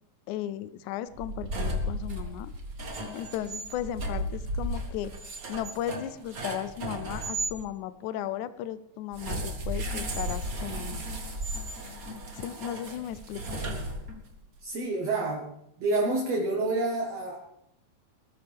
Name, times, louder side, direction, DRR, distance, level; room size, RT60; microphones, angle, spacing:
voice 1, 0.3-2.5 3.1-5.1 5.5-11.0 12.4-13.7, left 11 dB, 90° left, 15 dB, 1.7 m, -36 dB
sound 1, 1.1-7.5 9.1-14.4, right 1 dB, 70° right, 0.8 m, -34 dB
voice 2, 14.6-15.5 15.8-17.4, right 2 dB, 55° right, 0 dB, 2.2 m, -28 dB
19.5 x 13.0 x 3.5 m, 0.77 s
omnidirectional pair, 4.3 m